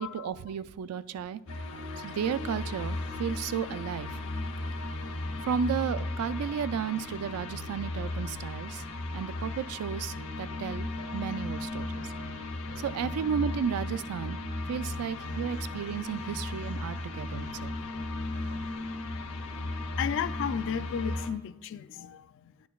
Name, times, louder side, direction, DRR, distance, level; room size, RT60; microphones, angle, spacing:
voice 1, 0.0-1.4 2.0-4.2 5.4-8.9 9.1-10.9 11.1-12.1 12.8-14.4 14.7-17.7, right 7 dB, 75° right, 0.3 m, -33 dB
sound 1, 1.5-21.3, left 2 dB, 75° left, 0.7 m, -36 dB
voice 2, 18.4-18.7 19.1-19.2 19.9-22.3, left 8 dB, 55° left, 0.3 m, -34 dB
10.5 x 9.3 x 2.3 m
head